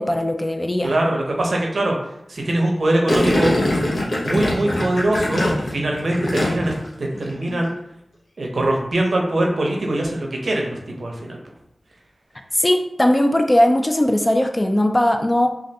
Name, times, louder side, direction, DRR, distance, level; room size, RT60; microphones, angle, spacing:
voice 1, 0.0-0.9 12.5-15.5, left 1 dB, 25° left, 4 dB, 0.3 m, -18 dB
voice 2, 0.8-2.0 2.3-3.6 4.2-7.7 8.4-11.4, right 1 dB, 65° right, 0 dB, 0.6 m, -22 dB
Gurgling, 3.1-6.9 7.1-7.5, left 1 dB, 85° left, 0.7 m, -22 dB
3.1 x 2.4 x 2.7 m, 0.78 s
wide cardioid pair, 70°, 0 cm